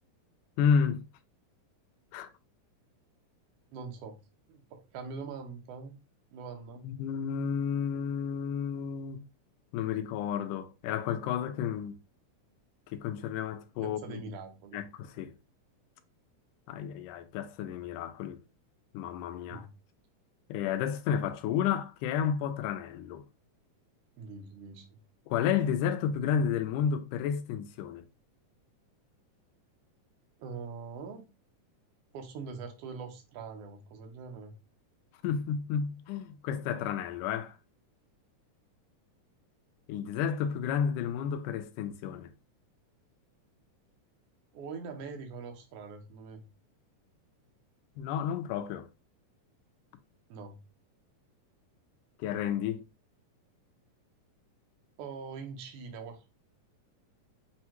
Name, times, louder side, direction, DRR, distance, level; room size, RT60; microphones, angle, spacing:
voice 1, 0.6-1.0 2.1-2.3 6.8-9.2 9.7-12.0 12.9-14.3 14.7-15.3 16.7-18.4 18.9-19.7 20.5-23.2 25.3-28.0 35.2-37.6 39.9-42.3 48.0-48.9 52.2-52.8, left 7 dB, 85° left, 2.1 m, -31 dB
voice 2, 3.7-4.2 4.5-6.0 6.3-6.8 13.8-14.8 19.5-19.7 24.2-25.0 30.4-31.2 32.1-34.5 44.5-46.5 50.3-50.6 55.0-56.2, right 5 dB, 70° right, 1.5 m, -43 dB
6.2 x 2.2 x 2.9 m
omnidirectional pair, 3.6 m